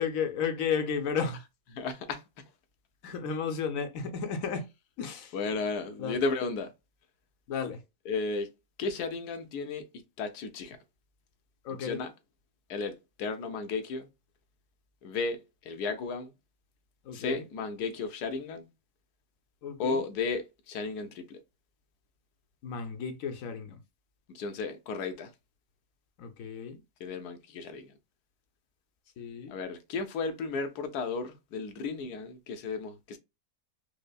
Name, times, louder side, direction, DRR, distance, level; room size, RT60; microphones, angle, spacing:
voice 1, 0.0-1.4 3.0-4.7 5.0-5.3 6.0-6.2 7.5-7.8 11.6-12.0 17.1-17.4 19.6-20.0 22.6-23.8 26.2-26.8 29.2-29.5, left 6 dB, 65° left, 1.0 m, -33 dB
voice 2, 1.7-2.2 5.3-6.7 8.1-8.5 8.8-9.8 10.2-10.8 11.7-12.1 12.7-14.1 15.0-16.3 17.1-18.6 19.8-21.4 24.3-25.3 27.0-27.9 29.5-33.2, left 4 dB, 90° left, 1.3 m, -34 dB
5.1 x 2.1 x 2.3 m
omnidirectional pair, 1.6 m